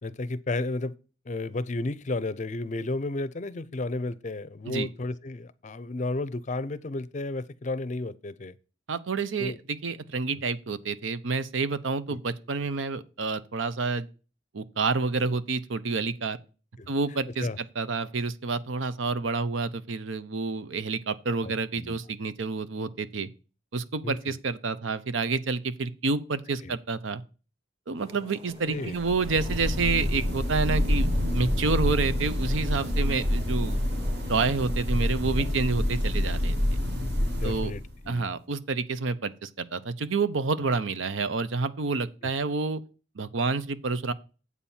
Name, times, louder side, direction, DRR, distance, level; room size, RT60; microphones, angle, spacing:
voice 1, 0.0-0.9 1.3-8.5 9.4-9.6 12.1-12.2 15.2-15.4 16.8-16.9 17.4-17.6 21.4-22.0 24.0-24.4 26.6-26.8 28.7-29.0 31.9-32.1 35.4-35.5 37.4-38.3 42.2-42.3, left 2 dB, 40° left, 0.5 m, -33 dB
voice 2, 8.9-14.1 14.5-16.4 16.9-17.5 17.8-23.3 23.7-27.2 27.9-31.1 31.3-33.8 34.3-36.6 37.4-37.7 38.1-42.8 43.2-44.1, right 4 dB, 85° right, 0.7 m, -29 dB
sound 1, 28.0-34.8, equal, 30° right, 1.8 m, -48 dB
sound 2, 28.9-38.1, left 1 dB, 60° right, 2.0 m, -27 dB
8.3 x 4.3 x 7.1 m
head